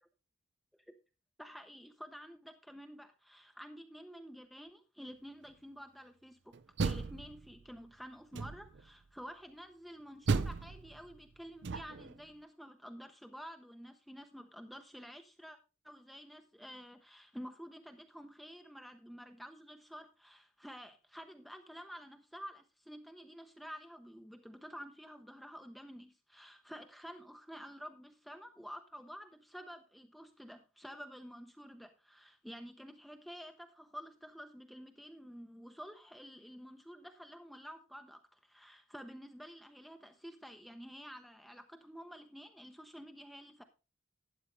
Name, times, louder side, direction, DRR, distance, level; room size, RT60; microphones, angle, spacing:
voice 1, 1.4-15.6 15.8-43.6, equal, ahead, 6 dB, 0.7 m, -50 dB
Door, 6.5-7.8 8.3-8.9 10.3-12.2, right 4 dB, 55° right, 0.5 m, -36 dB
12.0 x 9.3 x 3.3 m, 0.30 s
head